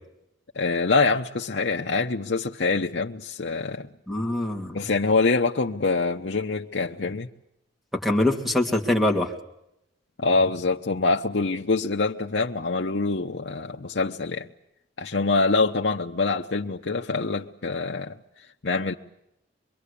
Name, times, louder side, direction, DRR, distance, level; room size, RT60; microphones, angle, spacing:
voice 1, 0.5-3.9 4.7-7.3 10.2-14.5 15.0-18.2 18.6-18.9, left 3 dB, 65° left, 0.9 m, -25 dB
voice 2, 4.1-4.8 8.0-9.3, left 1 dB, ahead, 2.7 m, -23 dB
25.0 x 23.0 x 8.4 m
head